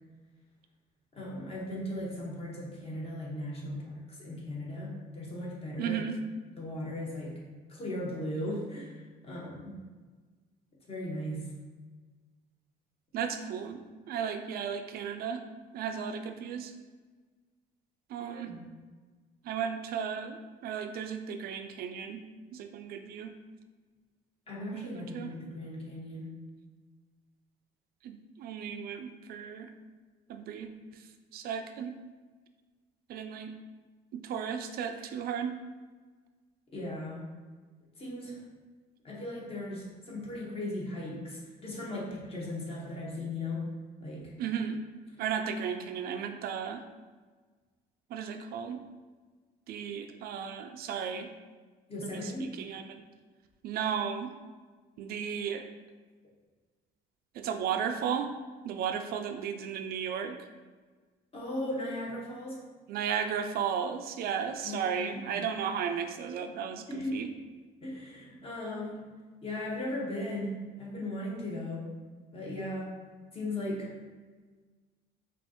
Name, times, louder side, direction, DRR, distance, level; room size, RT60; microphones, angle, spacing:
voice 1, 1.1-6.0 6.5-7.4 7.7-9.7 10.9-11.5 18.2-18.6 24.5-26.4 36.7-37.3 38.0-38.5 39.0-43.7 44.0-44.3 51.9-52.5 61.3-62.6 64.6-65.5 66.9-67.2 67.8-69.1 69.4-71.9 72.3-72.9 73.3-73.9, left 1 dB, 35° left, -4 dB, 1.2 m, -37 dB
voice 2, 5.8-6.2 13.1-13.8 14.1-15.4 15.7-16.7 18.1-18.5 19.4-22.2 22.5-23.3 24.7-25.3 28.0-29.7 30.3-31.1 31.3-31.9 33.1-33.5 34.1-35.5 44.4-44.8 45.2-46.8 48.1-48.8 49.7-51.3 52.0-53.0 53.6-54.3 55.0-55.7 57.3-58.3 58.6-60.4 62.9-67.3, right 7 dB, 65° right, 6 dB, 0.4 m, -34 dB
5.4 x 2.4 x 2.9 m, 1.4 s
cardioid pair, 110°, 17 cm